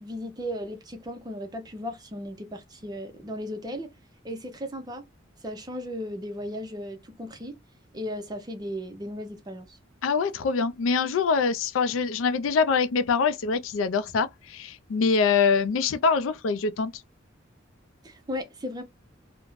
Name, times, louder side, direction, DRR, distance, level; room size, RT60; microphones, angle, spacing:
voice 1, 0.0-3.9 4.2-5.0 5.4-7.5 7.9-9.8 18.0-18.8, equal, 20° right, 0.5 m, -36 dB
voice 2, 10.0-16.9, left 5 dB, 90° left, 0.4 m, -24 dB
2.5 x 2.1 x 3.0 m
head